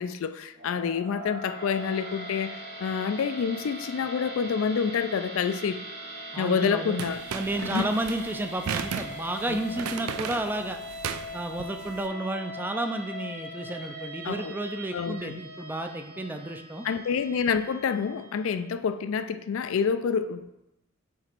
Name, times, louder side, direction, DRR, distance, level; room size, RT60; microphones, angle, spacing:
voice 1, 0.0-5.8 6.4-7.2 7.6-7.9 9.5-9.6 14.2-14.5 14.9-15.4 16.8-20.5, left 6 dB, 65° left, 12 dB, 0.3 m, -28 dB
sound 1, 0.5-18.8, equal, 60° right, 2.0 m, -41 dB
voice 2, 6.3-7.0 7.3-10.8 11.3-16.9, right 1 dB, 10° right, 6 dB, 0.3 m, -32 dB
sound 2, 7.0-12.0, right 7 dB, 85° right, 0.4 m, -35 dB
7.2 x 3.0 x 4.4 m, 0.91 s
head